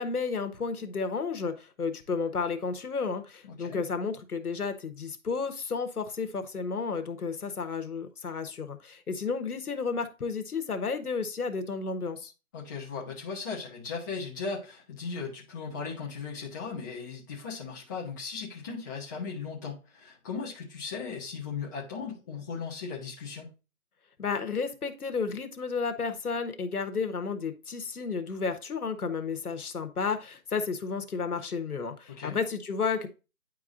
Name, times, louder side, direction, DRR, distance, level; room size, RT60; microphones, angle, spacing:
voice 1, 0.0-12.3 24.2-33.1, left 5 dB, 85° left, 1.3 m, -32 dB
voice 2, 3.4-3.8 12.5-23.5 32.1-32.4, left 5 dB, 15° left, 0.9 m, -37 dB
9.5 x 4.7 x 2.5 m
hypercardioid pair, 155°, 44 cm